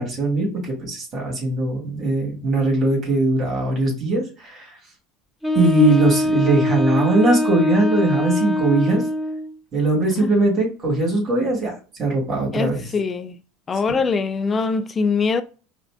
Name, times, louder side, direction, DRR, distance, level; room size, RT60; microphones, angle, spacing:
voice 1, 0.0-4.6 5.5-9.0 9.7-11.7 12.0-12.9 13.9-14.0, right 2 dB, 40° right, 2.1 m, -20 dB
Wind instrument woodwind instrument, 5.4-9.5, left 1 dB, 10° left, 0.9 m, -22 dB
voice 2, 12.5-13.4 13.7-15.4, left 4 dB, 30° left, 0.5 m, -22 dB
4.8 x 2.7 x 2.4 m
hypercardioid pair, 90°, 0 cm